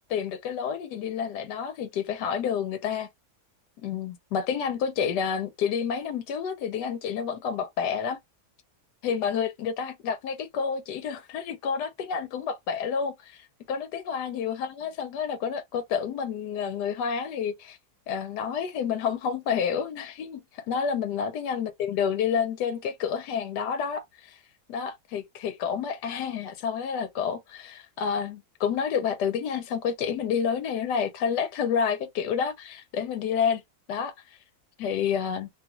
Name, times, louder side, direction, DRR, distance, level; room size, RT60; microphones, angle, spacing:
voice 1, 0.1-3.1 3.8-8.2 9.0-17.8 18.1-20.4 20.7-24.4 24.7-33.6 33.9-34.1 34.8-35.5, left 7 dB, 85° left, 1.2 m, -29 dB
2.9 x 2.3 x 2.9 m
omnidirectional pair, 1.7 m